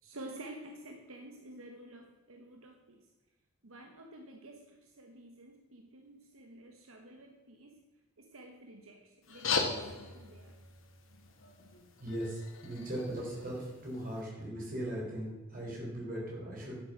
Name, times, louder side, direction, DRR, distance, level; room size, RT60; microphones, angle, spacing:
voice 1, 0.0-3.1 3.6-7.8 8.2-10.6 16.1-16.2, right 1 dB, 80° right, 3 dB, 1.2 m, -50 dB
sound 1, 9.2-14.2, left 4 dB, 70° left, 1.9 m, -39 dB
voice 2, 12.0-16.7, right 1 dB, 40° right, -3 dB, 4.5 m, -39 dB
10.5 x 8.1 x 6.1 m, 1.2 s
head